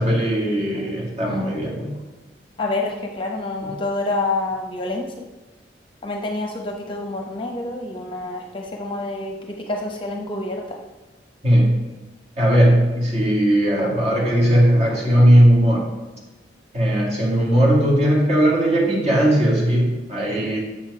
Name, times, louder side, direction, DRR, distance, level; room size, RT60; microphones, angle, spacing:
voice 1, 0.0-1.9 3.6-3.7 11.4-11.8 12.4-15.9 16.7-20.6, equal, 35° right, -3 dB, 2.0 m, -18 dB
voice 2, 1.2-1.5 2.6-5.2 6.0-10.8, left 2 dB, 30° left, 2 dB, 0.8 m, -28 dB
7.3 x 6.2 x 4.7 m, 1.2 s
head